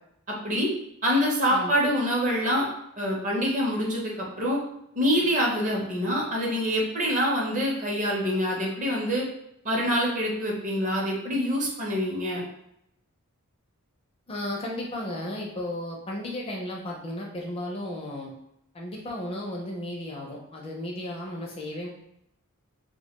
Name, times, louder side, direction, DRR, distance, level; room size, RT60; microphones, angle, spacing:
voice 1, 0.3-0.7 1.0-2.6 3.0-4.6 5.0-9.2 9.6-12.4, equal, 35° right, -3 dB, 0.6 m, -25 dB
voice 2, 14.3-18.3 18.7-21.9, left 1 dB, 25° left, -2 dB, 0.4 m, -34 dB
2.2 x 2.1 x 2.9 m, 0.78 s
head